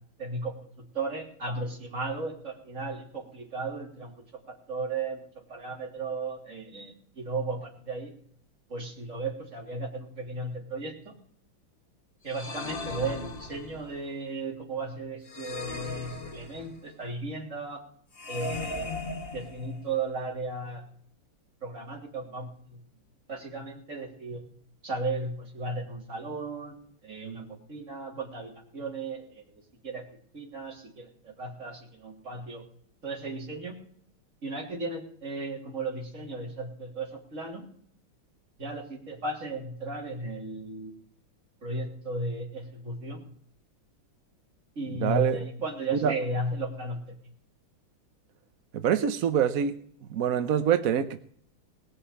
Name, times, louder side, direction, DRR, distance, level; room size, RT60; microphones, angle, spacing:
voice 1, 0.2-4.1 4.5-8.1 8.7-11.1 12.2-17.8 18.3-18.9 19.3-20.9 21.6-22.8 23.3-24.4 24.8-26.8 27.0-29.4 29.8-30.1 30.3-32.6 33.0-33.8 34.4-37.7 38.6-40.9 41.6-43.2 44.8-47.0, right 2 dB, 35° right, -1 dB, 3.6 m, -35 dB
sound 1, 12.3-14.0 15.3-16.9 18.1-20.0, left 2 dB, 30° left, 1.3 m, -37 dB
voice 2, 45.0-45.4 45.9-46.1 48.7-49.7 50.1-51.2, right 8 dB, 65° right, 10 dB, 0.8 m, -25 dB
19.0 x 6.6 x 8.5 m, 0.64 s
omnidirectional pair, 2.4 m